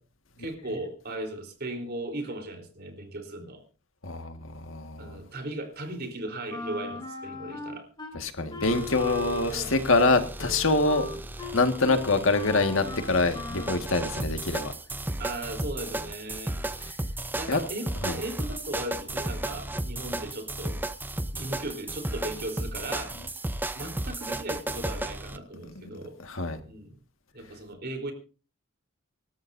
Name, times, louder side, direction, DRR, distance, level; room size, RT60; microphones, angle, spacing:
voice 1, 0.4-3.6 5.0-7.9 9.5-9.7 15.2-16.5 17.1-20.8 21.3-23.1 23.7-26.2 26.6-27.0 27.3-28.1, right 1 dB, 50° right, 3.9 m, -37 dB
voice 2, 4.0-5.2 8.1-11.1 11.5-14.7 17.5-17.6 18.0-18.2 26.2-26.6, left 3 dB, 70° left, 1.8 m, -25 dB
Wind instrument woodwind instrument, 6.5-8.1 8.5-13.8, left 2 dB, 20° left, 4.0 m, -39 dB
sound 1, 8.6-25.4, right 1 dB, 10° right, 0.7 m, -34 dB
26.0 x 13.0 x 2.7 m
head